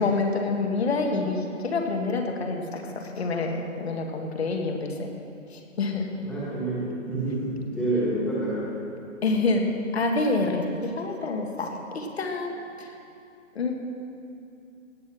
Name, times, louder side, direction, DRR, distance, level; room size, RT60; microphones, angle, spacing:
voice 1, 0.0-5.1 5.5-6.1 9.2-9.6 9.9-12.9 13.5-13.7, left 3 dB, 50° left, 3 dB, 1.7 m, -27 dB
voice 2, 6.2-8.7, right 1 dB, ahead, -9 dB, 1.6 m, -28 dB
17.0 x 8.0 x 6.2 m, 2.5 s
hypercardioid pair, 170°, 39 cm